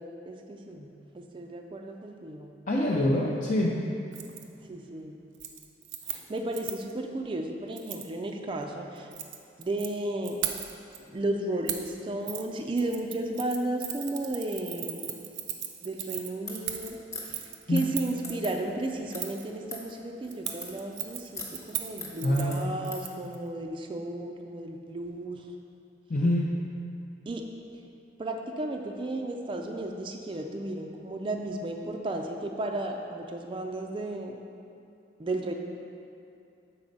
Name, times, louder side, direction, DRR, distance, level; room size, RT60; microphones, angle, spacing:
voice 1, 0.0-2.5 4.7-5.2 6.1-9.1 9.6-10.4 11.0-15.2 15.8-17.4 17.7-25.5 27.3-27.5 28.2-34.4 35.2-35.5, right 1 dB, 30° right, 2 dB, 0.3 m, -34 dB
voice 2, 2.7-3.7 17.7-17.8 22.2-22.6 26.1-26.5, left 1 dB, 45° left, -5 dB, 0.5 m, -25 dB
Keys jangling, 4.1-4.4 4.8-5.1 5.3-6.9 7.8-8.1 9.0-9.9 10.2-11.0 11.7-11.9 12.3-12.4 12.8-18.3 19.2-19.5 20.3-23.4 23.6-23.7, right 11 dB, 85° right, 0.5 m, -38 dB
sound 1, 16.4-23.1, left 2 dB, 15° left, 1.0 m, -43 dB
7.1 x 4.2 x 5.2 m, 2.6 s
head